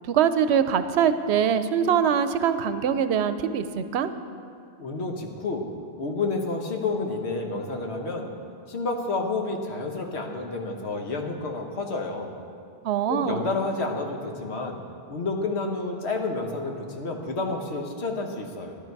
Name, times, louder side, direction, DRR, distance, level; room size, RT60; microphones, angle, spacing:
voice 1, 0.0-4.1 12.8-13.5, right 8 dB, 80° right, 11 dB, 0.9 m, -23 dB
voice 2, 4.8-5.7 6.0-8.3 8.7-12.3 13.1-14.8 15.1-18.8, left 3 dB, 80° left, 3 dB, 1.4 m, -30 dB
12.0 x 11.0 x 4.6 m, 2.4 s
omnidirectional pair, 1.1 m